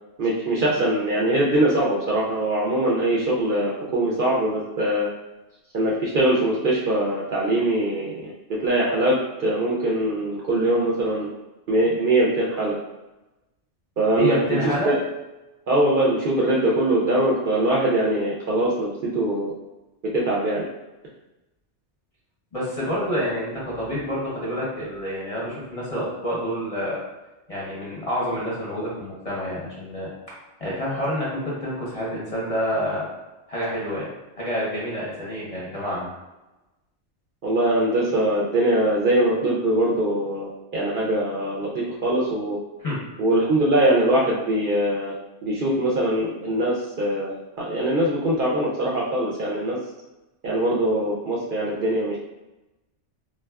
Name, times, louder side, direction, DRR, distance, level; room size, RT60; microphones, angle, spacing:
voice 1, 0.2-5.1 5.7-8.3 8.6-11.3 11.7-12.8 14.0-14.4 14.6-15.0 15.7-19.5 20.1-20.6 37.4-42.6 43.2-45.1 45.4-49.8 50.4-52.2, right 1 dB, 60° right, -5 dB, 0.6 m, -22 dB
voice 2, 14.1-14.9 22.5-27.0 27.5-33.0 33.5-34.1 34.4-36.1 42.8-43.0, equal, 35° left, -6 dB, 0.6 m, -28 dB
3.6 x 2.3 x 2.2 m, 1.0 s
omnidirectional pair, 1.2 m